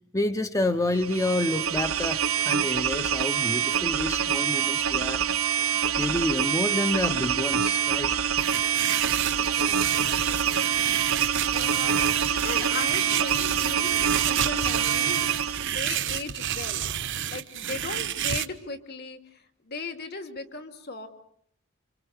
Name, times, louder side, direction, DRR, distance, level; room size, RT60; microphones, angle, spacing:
voice 1, 0.1-5.2 6.0-8.2, left 1 dB, 15° left, 9 dB, 1.0 m, -28 dB
sound 1, 1.0-15.8, right 8 dB, 80° right, 1.1 m, -26 dB
sound 2, 8.4-18.5, right 10 dB, 60° right, 1.1 m, -31 dB
voice 2, 9.3-11.2 11.5-12.0 12.3-16.9 17.3-21.1, left 4 dB, 50° left, 7 dB, 2.8 m, -38 dB
28.5 x 26.5 x 6.7 m, 0.68 s
head